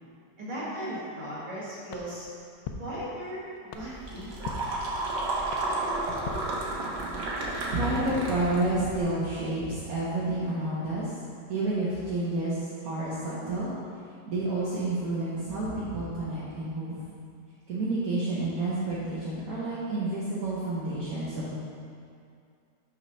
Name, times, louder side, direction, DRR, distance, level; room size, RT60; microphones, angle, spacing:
voice 1, 0.4-2.3 2.8-3.4 3.7-4.6, equal, 30° right, -9 dB, 1.8 m, -37 dB
sound 1, 1.9-7.2, left 5 dB, 70° left, 1.0 m, -43 dB
sound 2, 3.7-9.0, right 2 dB, 90° right, 1.7 m, -32 dB
voice 2, 7.7-11.1 11.5-13.7 14.3-17.0 17.7-21.6, right 2 dB, 60° right, -8 dB, 1.3 m, -30 dB
6.2 x 4.5 x 5.3 m, 2.4 s
omnidirectional pair, 1.8 m